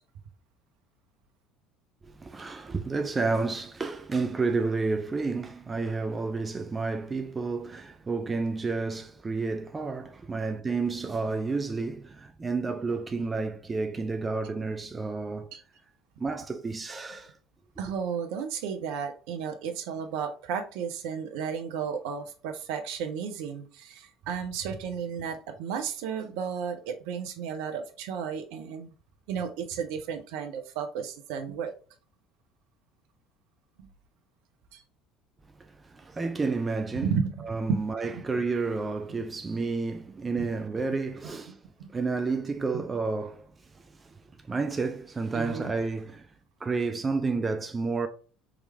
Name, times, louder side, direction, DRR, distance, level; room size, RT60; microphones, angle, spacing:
voice 1, 2.0-15.5 16.2-17.4 35.6-37.1 37.4-41.6 41.9-46.3 46.6-48.1, right 4 dB, 25° right, 0.5 m, -31 dB
voice 2, 17.8-28.9 29.3-31.7 33.8-33.9 34.7-34.8 36.9-37.8 38.1-38.2 40.4-40.5 41.8-41.9 42.7-42.8 45.3-45.7, right 7 dB, 60° right, 0.8 m, -33 dB
5.0 x 3.2 x 3.3 m
figure-of-eight pair, 60°, 0 cm